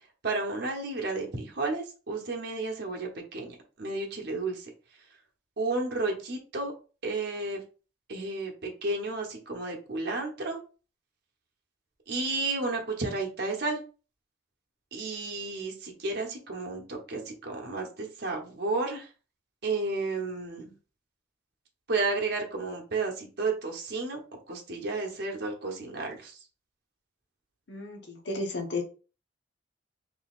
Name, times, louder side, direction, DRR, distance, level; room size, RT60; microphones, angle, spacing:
voice 1, 0.2-4.7 5.6-6.7 7.0-7.6 8.1-10.6 12.1-13.8 14.9-19.1 19.6-20.7 21.9-24.2 24.5-26.4, right 3 dB, 55° right, 1 dB, 0.9 m, -32 dB
voice 2, 27.7-28.8, left 2 dB, 60° left, 3 dB, 0.9 m, -33 dB
3.9 x 3.3 x 2.4 m, 0.35 s
head